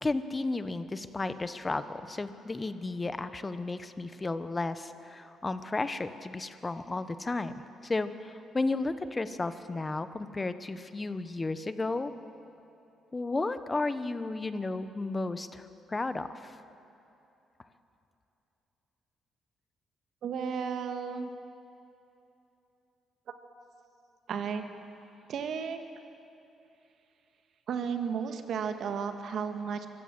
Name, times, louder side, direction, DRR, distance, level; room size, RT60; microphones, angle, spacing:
voice 1, 0.0-7.5 7.8-12.1 13.1-16.6, left 3 dB, 25° left, 12 dB, 1.0 m, -33 dB
voice 2, 20.2-21.3 24.3-24.6 25.3-25.8 27.7-29.9, right 6 dB, 70° right, 7 dB, 1.7 m, -33 dB
24.0 x 15.0 x 7.7 m, 2.9 s
cardioid pair, 90°, 0 cm